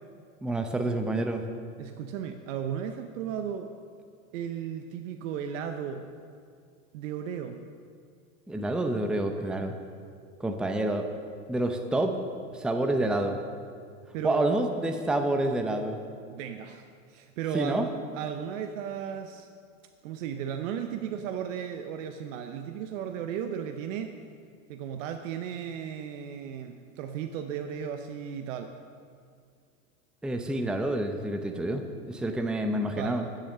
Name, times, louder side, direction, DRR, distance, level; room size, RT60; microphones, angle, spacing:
voice 1, 0.4-1.4 8.5-9.7 10.4-11.1 11.5-12.2 12.5-13.4 14.2-16.0 17.5-17.9 30.2-33.2, right 1 dB, ahead, 6 dB, 0.6 m, -28 dB
voice 2, 1.8-3.7 4.3-6.1 6.9-7.6 14.1-14.5 16.3-19.5 20.0-24.2 24.7-28.7 32.9-33.2, right 8 dB, 65° right, 7 dB, 0.8 m, -35 dB
10.0 x 7.7 x 6.6 m, 2.2 s
hypercardioid pair, 100°, 41 cm